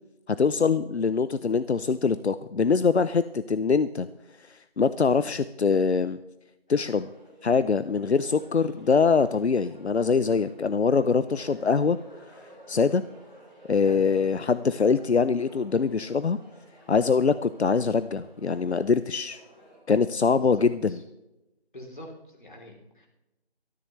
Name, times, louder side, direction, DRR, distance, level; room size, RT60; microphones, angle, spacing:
voice 1, 0.3-4.1 4.4-6.2 6.7-7.1 7.4-12.0 12.7-13.0 13.7-16.4 16.9-19.4 19.9-21.0, left 5 dB, 85° left, 14 dB, 0.7 m, -23 dB
sound 1, 6.7-19.8, right 1 dB, 10° left, 2.3 m, -53 dB
voice 2, 20.4-21.0 21.7-23.1, equal, 50° left, 1 dB, 3.4 m, -45 dB
18.5 x 14.0 x 3.2 m, 0.94 s
figure-of-eight pair, 175°, 32 cm